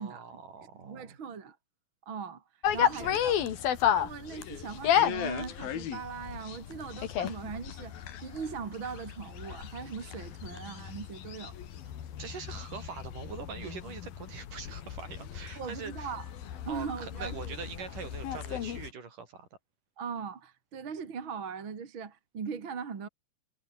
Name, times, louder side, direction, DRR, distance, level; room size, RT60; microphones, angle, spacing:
voice 1, 0.0-1.2 2.9-3.3 12.2-16.1 16.7-19.5, right 5 dB, 60° right, 5.7 m, -43 dB
voice 2, 0.7-1.6 2.1-2.4 2.7-3.4 3.8-11.6 15.6-16.2 16.7-17.9 20.0-23.1, right 6 dB, 35° right, 2.7 m, -40 dB
sound 1, 2.6-18.9, left 10 dB, 75° left, 4.0 m, -33 dB
omnidirectional pair, 4.2 m